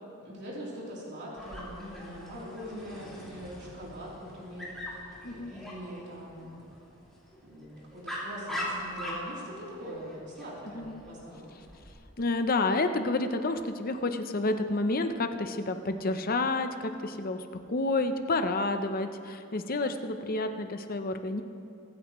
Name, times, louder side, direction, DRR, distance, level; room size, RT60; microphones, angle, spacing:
voice 1, 0.2-6.7 7.4-11.5, equal, 55° right, -6 dB, 3.4 m, -42 dB
Dog, 1.4-11.9, equal, ahead, 2.6 m, -42 dB
voice 2, 5.2-5.6 10.7-11.0 12.2-21.4, left 2 dB, 40° left, 8 dB, 0.7 m, -30 dB
24.0 x 9.4 x 3.1 m, 2.5 s
head